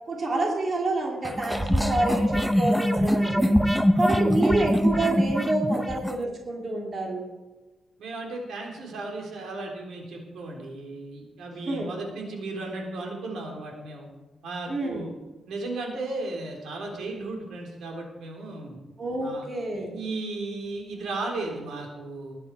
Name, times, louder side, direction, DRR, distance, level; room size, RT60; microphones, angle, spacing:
voice 1, 0.1-3.4 4.0-7.2 11.6-11.9 14.7-15.0 19.0-19.9, right 2 dB, 35° right, 0 dB, 2.6 m, -28 dB
sound 1, 1.2-6.2, equal, ahead, 0.7 m, -23 dB
voice 2, 8.0-14.1 14.4-15.1 15.5-18.8 19.2-19.5 19.7-22.4, right 2 dB, 80° right, 1 dB, 3.7 m, -35 dB
20.0 x 9.9 x 4.7 m, 1.2 s
wide cardioid pair, 145°, 0 cm